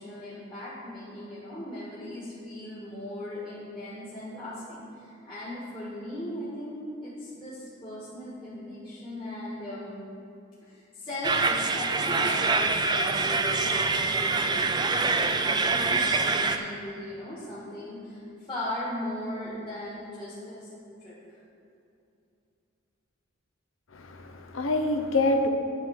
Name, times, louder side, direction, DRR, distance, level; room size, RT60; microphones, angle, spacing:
voice 1, 0.0-10.0 10.6-20.7 21.0-21.4, left 1 dB, 25° left, -10 dB, 1.7 m, -38 dB
sound 1, 11.2-16.6, right 3 dB, 20° right, 0.4 m, -25 dB
voice 2, 23.9-25.5, left 2 dB, 85° left, 5 dB, 0.8 m, -26 dB
10.5 x 4.4 x 6.5 m, 2.6 s
head